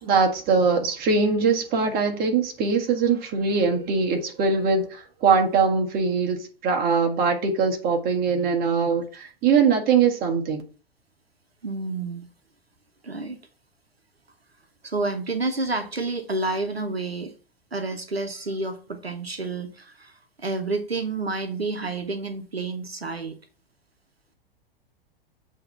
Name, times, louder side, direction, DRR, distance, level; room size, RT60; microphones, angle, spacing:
voice 1, 0.0-10.6, right 5 dB, 30° right, 1.5 m, -22 dB
voice 2, 11.6-12.3 13.0-13.4 14.8-17.3 17.7-23.4, right 3 dB, 85° right, 0.9 m, -29 dB
7.7 x 3.1 x 5.7 m
figure-of-eight pair, 95°, 30 cm